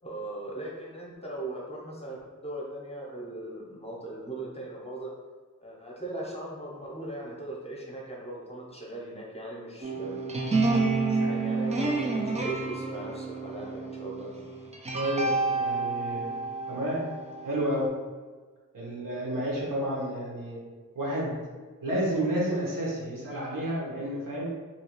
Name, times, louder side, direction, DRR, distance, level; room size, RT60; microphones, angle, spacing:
voice 1, 0.0-5.1 5.6-10.3 11.1-14.4, right 2 dB, 20° left, -4 dB, 0.7 m, -39 dB
sound 1, 9.8-17.9, right 3 dB, 20° right, 0.3 m, -29 dB
voice 2, 14.9-16.3 16.7-17.0 17.4-17.9 18.7-20.6 20.9-21.4 21.8-24.5, right 1 dB, 80° right, -5 dB, 1.1 m, -30 dB
2.8 x 2.8 x 2.9 m, 1.4 s
wide cardioid pair, 120°, 32 cm